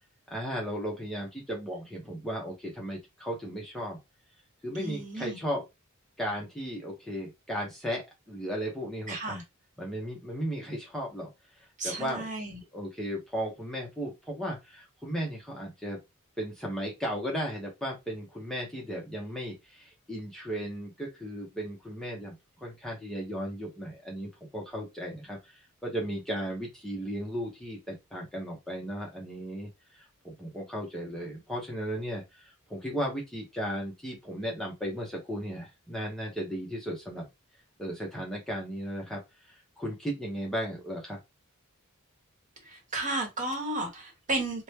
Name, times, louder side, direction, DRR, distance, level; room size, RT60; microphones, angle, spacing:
voice 1, 0.3-4.0 4.6-5.6 6.2-9.4 9.8-11.3 11.6-12.3 12.7-16.0 16.4-37.3 37.8-41.2, equal, ahead, 0.7 m, -35 dB
voice 2, 4.7-5.4 9.1-9.4 11.8-12.6 42.6-44.6, right 2 dB, 35° right, 1.1 m, -33 dB
2.9 x 2.2 x 3.2 m
head